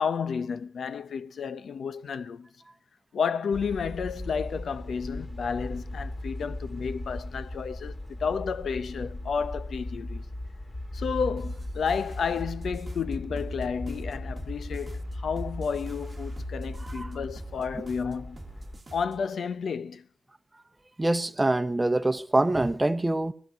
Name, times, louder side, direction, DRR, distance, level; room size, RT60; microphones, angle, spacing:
voice 1, 0.0-2.5 3.1-10.2 10.9-18.4 18.9-20.1, left 6 dB, 70° left, 0.8 m, -31 dB
sound 1, 3.5-18.8, left 1 dB, 30° left, 2.5 m, -37 dB
sound 2, 11.4-19.3, right 3 dB, 35° right, 1.2 m, -47 dB
voice 2, 21.0-23.3, right 2 dB, 20° right, 0.9 m, -25 dB
20.0 x 14.0 x 5.2 m
cardioid pair, 85°, 0 cm